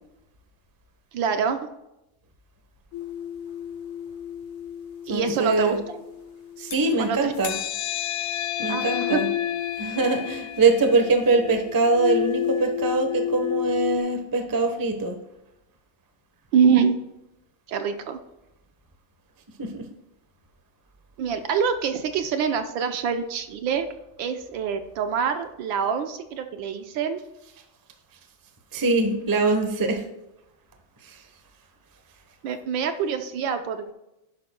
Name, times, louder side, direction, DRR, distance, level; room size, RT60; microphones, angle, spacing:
voice 1, 1.1-1.6 5.1-6.0 7.0-7.3 8.7-9.2 16.5-16.9 17.7-18.2 21.2-23.9 24.2-27.2 32.4-33.9, right 6 dB, 70° right, 7 dB, 1.4 m, -25 dB
sound 1, 2.9-6.9 7.4-14.0, left 11 dB, 70° left, 1.5 m, -31 dB
voice 2, 5.1-5.8 6.6-7.5 8.6-9.3 9.8-15.2 19.6-19.9 28.7-30.0 31.1-31.2, right 3 dB, 30° right, 5 dB, 0.4 m, -23 dB
11.5 x 10.5 x 2.3 m, 0.90 s
omnidirectional pair, 2.4 m